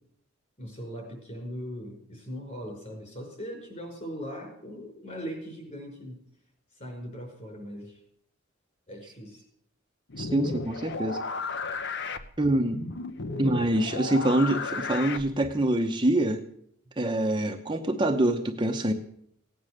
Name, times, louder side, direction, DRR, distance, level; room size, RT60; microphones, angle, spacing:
voice 1, 0.6-6.2 6.8-8.0 8.9-9.4, equal, 35° left, 2 dB, 5.2 m, -39 dB
sound 1, 10.1-15.7, left 3 dB, 60° left, 0.9 m, -34 dB
voice 2, 10.2-11.2 12.4-12.8 13.4-16.4 17.0-18.9, right 1 dB, 25° right, 3 dB, 0.9 m, -25 dB
17.0 x 9.3 x 6.5 m, 0.70 s
head